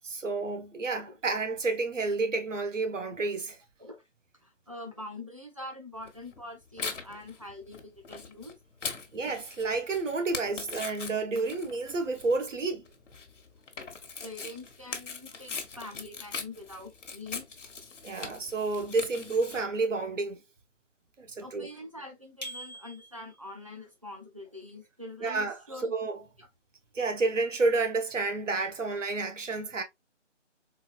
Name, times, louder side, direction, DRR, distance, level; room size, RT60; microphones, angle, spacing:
voice 1, 0.0-3.6 9.1-12.8 18.0-20.4 21.2-21.7 25.2-26.2 26.9-29.8, right 3 dB, 85° right, 1.0 m, -30 dB
voice 2, 4.4-8.6 14.2-17.5 21.4-25.9 26.4-26.5, left 2 dB, 30° right, 0.5 m, -44 dB
Tearing, 6.0-19.6, left 5 dB, 80° left, 0.9 m, -41 dB
sound 1, 22.4-23.5, equal, 40° left, 0.4 m, -43 dB
3.9 x 2.3 x 2.3 m
hypercardioid pair, 175°, 36 cm